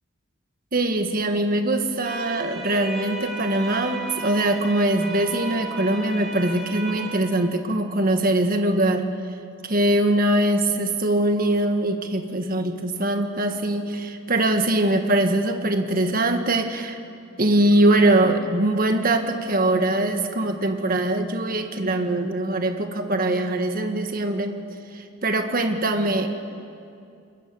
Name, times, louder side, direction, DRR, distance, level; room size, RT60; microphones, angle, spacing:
voice 1, 0.7-9.1 9.6-17.0 17.4-24.5 24.9-26.3, right 1 dB, 45° right, 6 dB, 1.7 m, -22 dB
sound 1, 2.1-7.1, right 3 dB, ahead, 4.3 m, -34 dB
27.0 x 22.0 x 7.1 m, 2.5 s
head